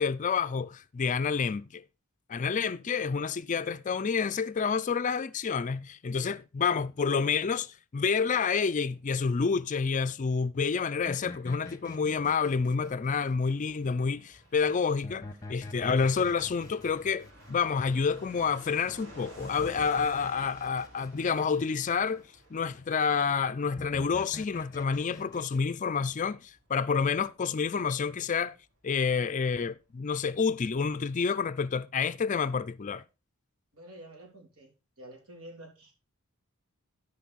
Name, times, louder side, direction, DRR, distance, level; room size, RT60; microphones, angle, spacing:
voice 1, 0.0-1.8 2.3-22.2 22.5-28.5 28.8-33.0, left 5 dB, 35° left, 0.4 m, -29 dB
sound 1, 11.1-13.9 15.0-18.5 19.4-22.1 23.8-25.6, left 2 dB, 15° left, 0.9 m, -46 dB
Fixed-wing aircraft airplane, 11.7-29.9 30.1-30.2 30.4-31.1, right 1 dB, 60° right, 4.5 m, -55 dB
voice 2, 33.7-34.7 35.0-35.9, right 1 dB, 80° right, 3.3 m, -48 dB
13.0 x 5.3 x 4.1 m
head